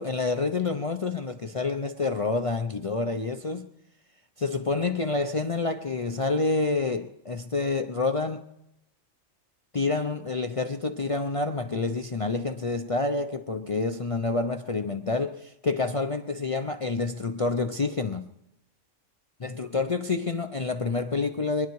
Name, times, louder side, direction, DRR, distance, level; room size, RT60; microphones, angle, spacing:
voice 1, 0.0-3.7 4.4-8.4 9.7-18.3 19.4-21.7, left 3 dB, 35° left, 0.5 m, -28 dB
24.0 x 10.5 x 4.7 m
omnidirectional pair, 1.3 m